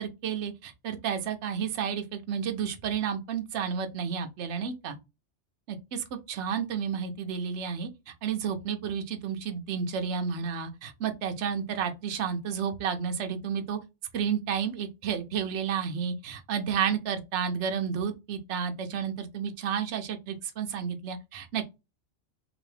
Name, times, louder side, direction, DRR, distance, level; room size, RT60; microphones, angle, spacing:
voice 1, 0.0-4.9 5.7-13.8 14.1-21.7, right 7 dB, 70° right, 1.0 m, -31 dB
2.9 x 2.7 x 3.2 m
omnidirectional pair, 1.3 m